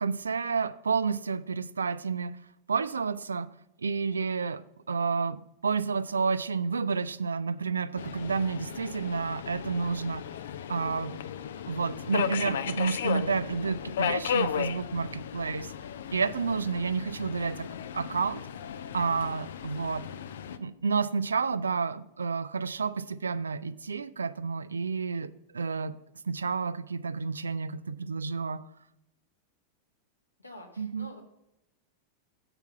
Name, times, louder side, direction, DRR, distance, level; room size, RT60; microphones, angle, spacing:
voice 1, 0.0-2.4 2.7-3.5 3.8-4.6 4.9-10.2 10.7-11.1 11.7-15.7 16.1-17.7 17.9-18.4 18.9-20.0 20.6-25.9 26.3-28.6 30.8-31.1, right 5 dB, 75° right, 0.3 m, -30 dB
Subway metro underground, 8.0-20.6, left 8 dB, 60° left, 0.4 m, -35 dB
voice 2, 20.2-20.7 30.4-31.2, left 1 dB, 85° left, 1.4 m, -48 dB
7.9 x 5.8 x 5.6 m
figure-of-eight pair, 90°, 0 cm